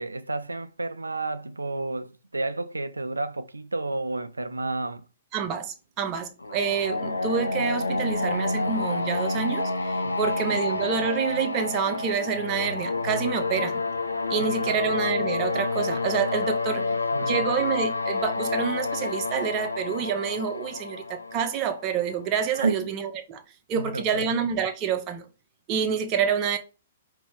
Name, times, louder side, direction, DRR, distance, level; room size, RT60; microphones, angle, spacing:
voice 1, 0.0-5.0 10.0-10.6 14.5-14.8 16.8-17.5 22.5-22.9 23.8-24.3, right 2 dB, 80° right, 0.4 m, -31 dB
voice 2, 5.3-13.8 14.3-16.8 17.2-23.4 23.7-25.3 25.7-26.6, right 7 dB, 30° right, 0.9 m, -28 dB
sound 1, 6.4-22.2, left 3 dB, 80° left, 0.6 m, -29 dB
5.3 x 2.9 x 3.1 m
figure-of-eight pair, 115°, 0 cm